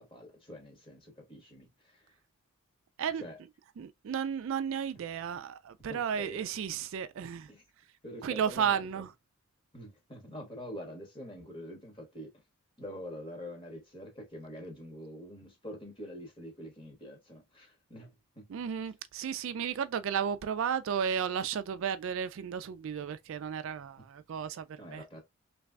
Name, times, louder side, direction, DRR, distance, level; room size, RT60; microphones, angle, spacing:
voice 1, 0.0-2.1 3.1-3.4 5.1-5.3 5.9-6.4 7.5-7.6 8.0-9.0 9.7-12.3 12.8-18.5 24.8-25.2, equal, 20° left, 1.4 m, -46 dB
voice 2, 3.8-7.5 8.2-9.1 18.5-24.6 24.9-25.0, right 7 dB, 60° right, 0.3 m, -33 dB
3.2 x 3.1 x 2.3 m
head